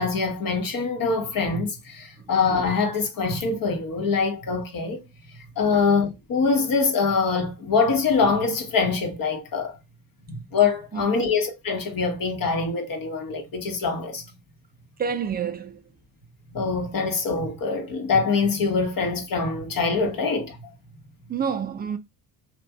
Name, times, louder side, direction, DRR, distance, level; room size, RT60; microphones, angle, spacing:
voice 1, 0.0-5.0 5.6-9.8 10.3-14.2 16.5-20.6, left 4 dB, 40° left, 1.1 m, -24 dB
voice 2, 15.0-15.8 21.3-22.0, right 7 dB, 20° right, 0.3 m, -28 dB
3.0 x 2.5 x 2.3 m
hypercardioid pair, 55°, 50 cm